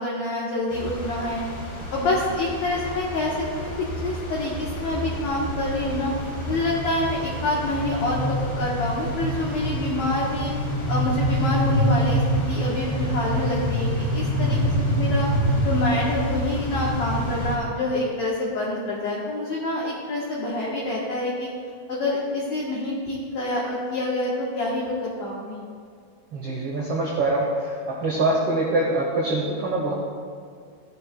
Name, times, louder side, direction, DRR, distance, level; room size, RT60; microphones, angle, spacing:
voice 1, 0.0-1.4 1.9-6.1 6.5-10.5 10.9-15.3 15.6-21.5 21.9-25.6, left 2 dB, 65° left, -5 dB, 1.8 m, -27 dB
sound 1, 0.7-17.6, equal, 40° left, 2.0 m, -27 dB
voice 2, 26.3-27.7 28.0-29.9, right 2 dB, 85° right, -4 dB, 1.2 m, -24 dB
14.0 x 11.5 x 2.3 m, 2.1 s
omnidirectional pair, 4.8 m